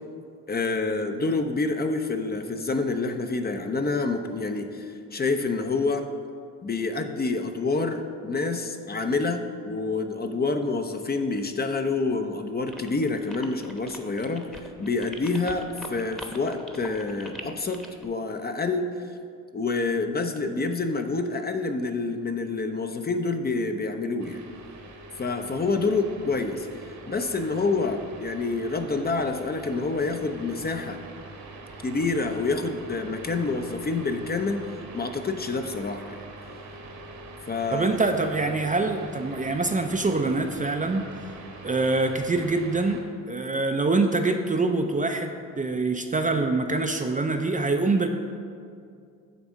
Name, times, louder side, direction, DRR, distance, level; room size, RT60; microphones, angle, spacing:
voice 1, 0.5-6.0 6.6-14.5 14.8-18.9 19.5-24.4 25.2-31.0 31.8-34.6 34.9-36.2 37.4-37.9, left 3 dB, 25° left, 6 dB, 0.6 m, -27 dB
sound 1, 12.7-18.1, equal, ahead, 1.0 m, -42 dB
sound 2, 24.2-43.0, right 2 dB, 60° right, 1.4 m, -44 dB
voice 2, 37.7-41.1 41.6-43.0 43.3-48.1, right 3 dB, 20° right, 5 dB, 0.5 m, -25 dB
9.1 x 3.5 x 6.2 m, 2.3 s
hypercardioid pair, 55°, 39 cm